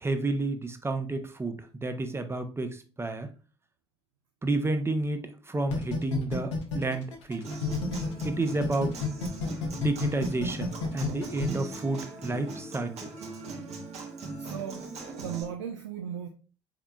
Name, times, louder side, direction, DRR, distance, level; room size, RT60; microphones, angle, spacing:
voice 1, 0.0-3.3 4.4-7.5 8.2-8.9 9.7-12.9, right 2 dB, 15° right, 0.7 m, -30 dB
sound 1, 5.7-8.3 8.6-11.5, left 5 dB, 75° left, 0.7 m, -30 dB
Human voice / Acoustic guitar, 7.4-15.4, right 3 dB, 45° right, 1.1 m, -40 dB
voice 2, 14.4-16.3, right 9 dB, 75° right, 0.4 m, -37 dB
4.5 x 3.7 x 2.3 m
figure-of-eight pair, 50°, 15 cm